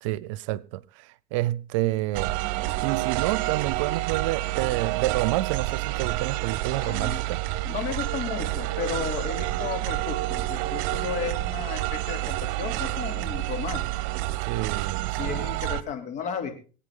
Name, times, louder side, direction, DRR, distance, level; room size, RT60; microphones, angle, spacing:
voice 1, 0.0-2.3 2.8-7.4 14.4-15.5, right 17 dB, 90° right, 0.6 m, -29 dB
sound 1, 2.1-15.8, right 17 dB, 70° right, 0.9 m, -29 dB
voice 2, 6.8-7.2 7.6-14.0 15.2-16.5, left 7 dB, 55° left, 3.3 m, -34 dB
24.5 x 8.7 x 3.8 m
supercardioid pair, 115°, 16 cm